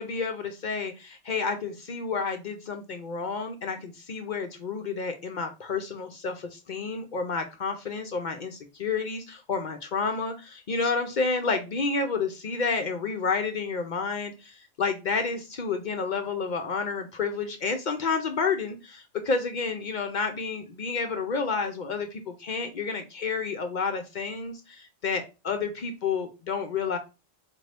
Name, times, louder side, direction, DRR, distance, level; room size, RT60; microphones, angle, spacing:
voice 1, 0.0-27.0, left 4 dB, 50° left, 6 dB, 0.6 m, -30 dB
4.4 x 2.6 x 3.3 m, 0.28 s
omnidirectional pair, 1.2 m